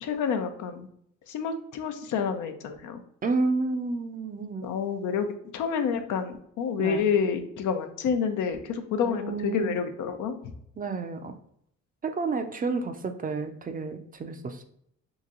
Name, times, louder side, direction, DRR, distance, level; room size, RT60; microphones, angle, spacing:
voice 1, 0.0-0.9 1.3-3.0 4.6-10.4, left 6 dB, 80° left, 7 dB, 0.6 m, -28 dB
voice 2, 3.2-4.7 6.8-7.0 9.0-9.8 10.8-11.3 12.0-14.6, right 3 dB, 30° right, 7 dB, 0.4 m, -30 dB
3.0 x 2.6 x 3.7 m, 0.70 s
cardioid pair, 90°, 30 cm